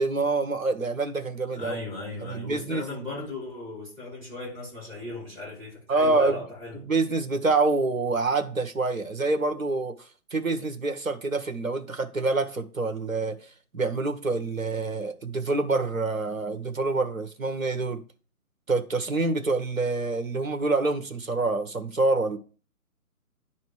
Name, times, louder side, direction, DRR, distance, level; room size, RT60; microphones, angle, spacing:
voice 1, 0.0-1.8 2.2-2.8 5.9-6.4 6.9-9.9 10.3-13.4 13.7-18.0 18.7-22.4, right 3 dB, 65° right, 1.7 m, -26 dB
voice 2, 1.6-6.8, left 2 dB, 10° right, 5.2 m, -37 dB
10.5 x 4.2 x 4.8 m
figure-of-eight pair, 135°, 44 cm